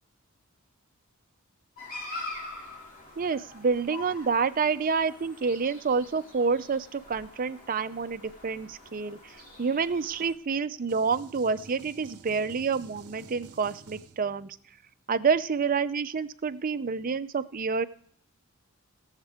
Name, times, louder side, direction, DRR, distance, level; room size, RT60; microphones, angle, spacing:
sound 1, 1.8-10.3, left 2 dB, 40° left, 2.5 m, -44 dB
voice 1, 3.2-9.3 9.6-14.6 15.1-17.8, right 5 dB, 40° right, 12 dB, 0.5 m, -28 dB
Bowed string instrument, 10.4-15.0, right 2 dB, 15° right, 2.6 m, -58 dB
sound 2, 10.9-14.6, right 4 dB, 75° right, 0.8 m, -50 dB
21.0 x 7.3 x 3.5 m, 0.62 s
head